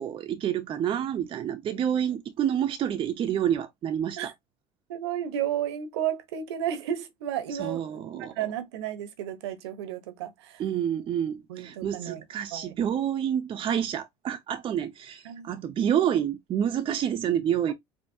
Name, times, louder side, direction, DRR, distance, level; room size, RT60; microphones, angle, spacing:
voice 1, 0.0-4.3 7.6-8.3 10.6-17.7, right 9 dB, 40° right, 0.6 m, -28 dB
voice 2, 4.9-10.6 11.5-12.2 12.5-12.7 15.2-15.5, right 10 dB, 85° right, 1.0 m, -33 dB
4.5 x 2.8 x 2.7 m
supercardioid pair, 100°, 14 cm